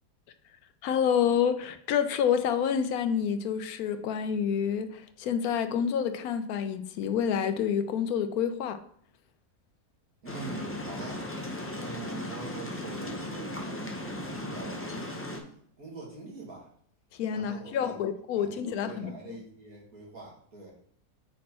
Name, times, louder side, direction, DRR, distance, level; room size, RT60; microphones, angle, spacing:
voice 1, 0.8-8.8 17.1-19.1, left 8 dB, 85° left, 9 dB, 1.1 m, -28 dB
voice 2, 10.2-11.4 11.7-15.5 15.8-16.7 17.3-17.9 18.4-20.7, right 4 dB, 75° right, -4 dB, 2.4 m, -44 dB
sound 1, 10.3-15.4, left 1 dB, 20° left, 0.4 m, -37 dB
5.2 x 4.3 x 4.2 m, 0.63 s
omnidirectional pair, 1.5 m